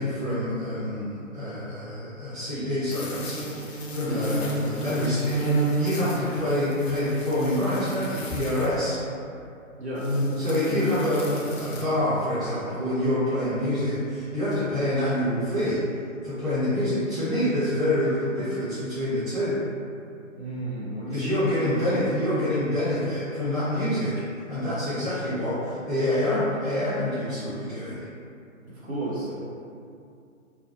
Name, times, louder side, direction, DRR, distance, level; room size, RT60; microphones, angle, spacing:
voice 1, 0.0-9.0 10.4-15.8 16.2-19.6 21.1-24.1 24.5-28.0, left 1 dB, ahead, -18 dB, 0.9 m, -26 dB
sound 1, 2.9-8.9 9.9-11.9, right 1 dB, 55° left, 0.5 m, -30 dB
voice 2, 4.0-4.4 5.9-6.2 9.8-10.1 20.4-21.7 28.7-29.3, right 1 dB, 55° right, -8 dB, 0.7 m, -33 dB
2.3 x 2.2 x 2.9 m, 2.5 s
figure-of-eight pair, 130°, 40 cm